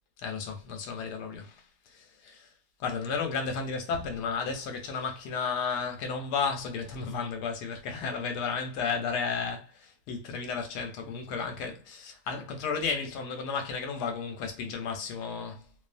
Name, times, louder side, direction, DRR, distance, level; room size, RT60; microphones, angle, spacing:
voice 1, 0.2-2.5 2.8-15.6, left 5 dB, 90° left, 1.2 m, -33 dB
2.7 x 2.3 x 2.4 m
omnidirectional pair, 1.7 m